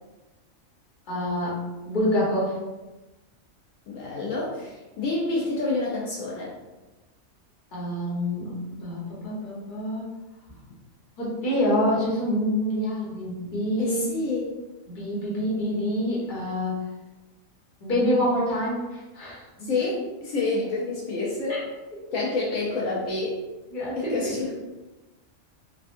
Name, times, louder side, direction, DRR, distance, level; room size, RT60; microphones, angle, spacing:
voice 1, 1.1-2.6 7.7-10.1 11.2-14.0 14.9-16.8 17.8-19.7 21.5-21.6 23.7-24.3, equal, 40° left, -6 dB, 1.0 m, -27 dB
voice 2, 3.9-6.5 13.8-14.6 19.6-21.6 22.1-23.4 24.0-24.5, left 3 dB, 75° left, -4 dB, 1.0 m, -28 dB
3.4 x 2.2 x 2.5 m, 1.1 s
omnidirectional pair, 1.4 m